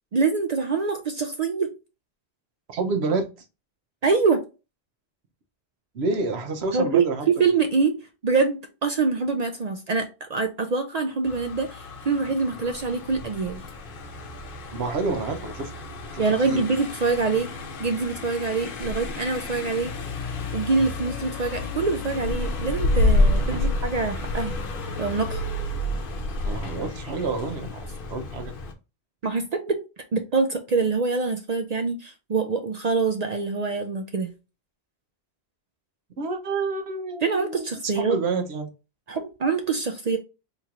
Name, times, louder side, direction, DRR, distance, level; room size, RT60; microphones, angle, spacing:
voice 1, 0.1-1.7 4.0-4.4 6.7-8.0 8.2-13.6 16.2-17.5 17.8-19.9 20.5-24.6 25.0-25.4 29.2-29.8 30.1-34.3 37.2-38.2 39.1-40.2, right 4 dB, 50° right, 0.5 m, -25 dB
voice 2, 2.7-3.3 5.9-7.3 14.7-15.7 16.1-16.6 23.5-23.7 26.4-28.5 36.2-37.7 37.9-38.7, right 3 dB, 85° right, 1.0 m, -28 dB
Car passing by, 11.2-28.7, left 2 dB, 60° left, 0.8 m, -29 dB
4.3 x 3.0 x 2.4 m
omnidirectional pair, 1.1 m